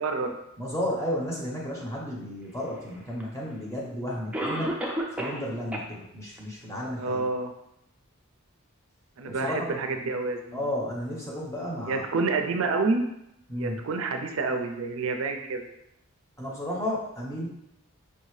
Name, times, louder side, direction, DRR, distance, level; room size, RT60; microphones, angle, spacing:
voice 1, 0.0-0.3 6.9-7.5 9.2-10.6 11.9-13.0 13.6-15.7, right 3 dB, 65° right, 5 dB, 0.4 m, -28 dB
voice 2, 0.6-4.7 5.1-7.2 9.3-9.8 10.5-12.0 13.5-13.8 16.4-17.5, left 1 dB, 15° left, -4 dB, 0.9 m, -33 dB
Cough, 3.2-3.3 4.3-5.5 5.7-5.8 6.4-6.5 7.0-7.1, right 1 dB, 5° right, 0.4 m, -30 dB
5.5 x 2.7 x 3.2 m, 0.82 s
head